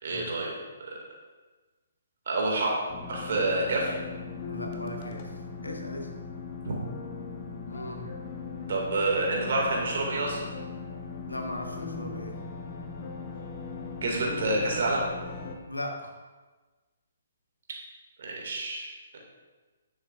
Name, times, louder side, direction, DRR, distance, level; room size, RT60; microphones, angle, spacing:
voice 1, 0.0-0.5 0.8-1.0 2.3-2.7 3.1-4.0 6.7-6.8 8.7-10.5 14.0-15.0 18.2-18.9, right 2 dB, 55° right, -1 dB, 2.2 m, -28 dB
sound 1, 2.9-15.5, left 4 dB, 40° left, 1.0 m, -39 dB
voice 2, 4.5-6.1 7.7-8.1 11.3-12.3 15.7-16.1, left 1 dB, 85° left, 2 dB, 1.2 m, -38 dB
10.0 x 7.2 x 2.5 m, 1.3 s
figure-of-eight pair, 130°, 0 cm